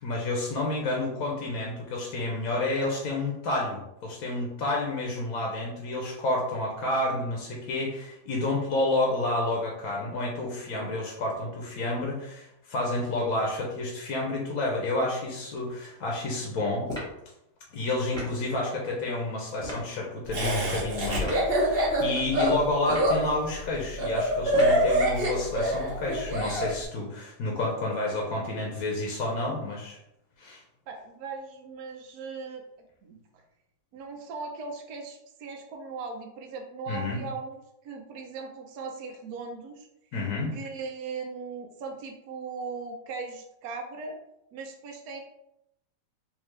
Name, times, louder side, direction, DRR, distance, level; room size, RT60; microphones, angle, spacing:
voice 1, 0.0-16.9 17.7-30.0 30.4-30.6 36.9-37.2 40.1-40.5, left 2 dB, 70° left, -2 dB, 1.1 m, -30 dB
sound 1, 16.9-17.2 18.1-18.4 19.6-19.9 21.2-21.5 22.8-23.2 24.5-24.9, equal, 5° left, 1.1 m, -36 dB
Laughter, 20.3-26.7, equal, 45° right, 0.9 m, -25 dB
voice 2, 30.9-32.6 33.0-33.2 33.9-39.9 40.5-44.2 44.5-45.2, right 4 dB, 75° right, 3 dB, 1.1 m, -38 dB
3.6 x 2.8 x 3.1 m, 0.83 s
omnidirectional pair, 1.7 m